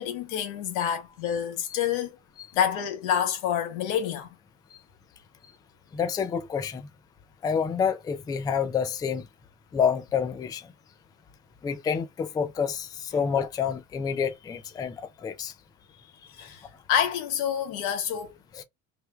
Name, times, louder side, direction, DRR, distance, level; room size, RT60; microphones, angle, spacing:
voice 1, 0.0-2.1 2.5-4.3 13.1-13.2 16.4-18.3, left 9 dB, 75° left, 1.3 m, -28 dB
voice 2, 5.9-6.9 7.4-9.3 9.7-10.7 11.6-15.5 18.5-18.6, left 7 dB, 10° left, 0.3 m, -28 dB
3.3 x 2.1 x 3.1 m
supercardioid pair, 120°, 41 cm